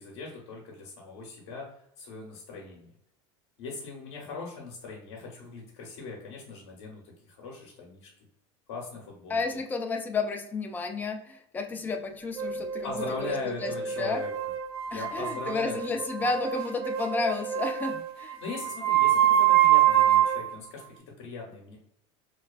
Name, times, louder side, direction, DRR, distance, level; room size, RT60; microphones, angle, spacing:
voice 1, 0.0-1.7 2.0-2.9 3.6-8.1 8.7-9.4 12.4-14.3 14.9-16.0 17.9-18.0 18.4-20.8 21.2-21.8, left 4 dB, 75° left, -2 dB, 0.7 m, -39 dB
voice 2, 9.3-12.9 13.4-13.7 14.0-14.2 14.9-18.4, left 4 dB, 10° left, 4 dB, 0.3 m, -31 dB
sound 1, 12.4-20.5, right 11 dB, 70° right, 0.4 m, -25 dB
2.4 x 2.3 x 2.3 m, 0.71 s
supercardioid pair, 115°, 14 cm